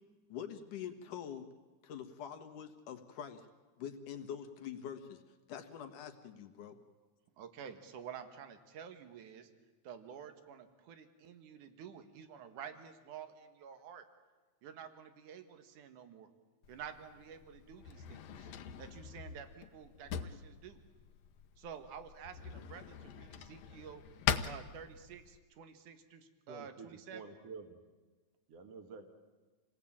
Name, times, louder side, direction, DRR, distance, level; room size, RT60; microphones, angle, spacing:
voice 1, 0.3-1.5 1.8-3.5 3.8-5.2 5.5-6.8, left 8 dB, 90° left, 6 dB, 3.1 m, -45 dB
voice 2, 7.4-9.5 9.8-14.0 14.6-16.3 16.7-18.5 18.8-20.8 21.6-24.0 24.4-27.2, right 7 dB, 80° right, 8 dB, 3.1 m, -50 dB
Drawer open or close, 16.6-25.4, left 8 dB, 70° left, 1.9 m, -42 dB
voice 3, 26.5-27.8 28.5-29.0, right 5 dB, 55° right, 6 dB, 2.7 m, -49 dB
27.5 x 18.5 x 8.7 m, 1.3 s
omnidirectional pair, 3.5 m